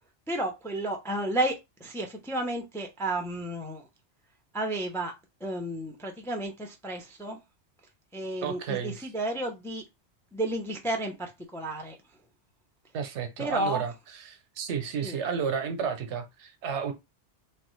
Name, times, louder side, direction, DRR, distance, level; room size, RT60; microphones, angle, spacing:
voice 1, 0.3-3.8 4.5-5.1 5.4-7.4 8.1-9.8 10.3-12.0 13.4-13.8 15.0-15.1, right 1 dB, 5° left, 0.4 m, -32 dB
voice 2, 8.4-9.1 12.9-16.9, right 7 dB, 80° right, 0.9 m, -32 dB
3.1 x 2.4 x 3.1 m
omnidirectional pair, 1.2 m